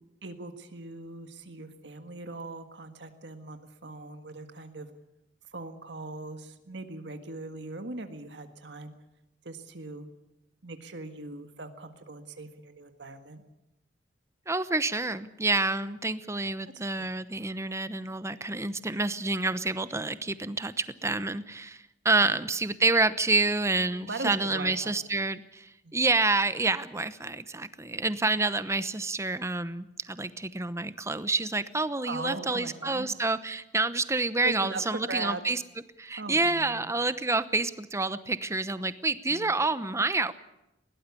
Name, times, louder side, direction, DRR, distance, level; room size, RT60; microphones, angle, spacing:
voice 1, 0.2-4.9 5.5-8.9 9.4-10.1 10.6-13.4 17.0-17.1 19.9-20.0 24.0-25.0 25.8-26.0 32.0-33.1 34.1-35.4 36.2-36.9 39.3-39.6, right 3 dB, 75° right, 7 dB, 1.7 m, -40 dB
voice 2, 14.5-35.6 36.0-40.3, right 3 dB, 15° right, 13 dB, 0.9 m, -28 dB
21.0 x 17.5 x 8.4 m, 0.91 s
head